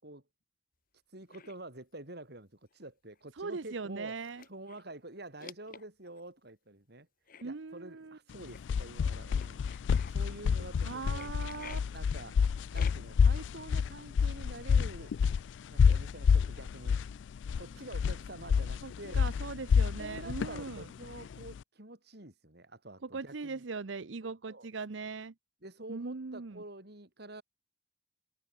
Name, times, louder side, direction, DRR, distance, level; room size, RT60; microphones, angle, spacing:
voice 1, 1.1-4.2 4.5-7.1 7.4-9.6 10.1-11.3 11.9-12.4 12.7-15.2 15.7-17.0 17.5-19.3 20.0-23.6 24.2-24.7 25.6-27.4, right 2 dB, 60° right, 4.4 m, -48 dB
sound 1, 1.3-1.5 2.7-2.8 3.2-3.3 4.0-4.9 5.4-6.2 7.3-7.4 8.5-8.6 9.3-10.1 11.1-11.8 12.7-13.2, left 6 dB, 50° left, 3.5 m, -49 dB
voice 2, 3.4-4.4 7.4-8.2 10.8-11.8 18.8-20.9 23.0-25.3 25.9-26.6, right 4 dB, 85° right, 0.8 m, -40 dB
sound 2, 8.3-21.6, left 6 dB, 75° left, 0.3 m, -28 dB
head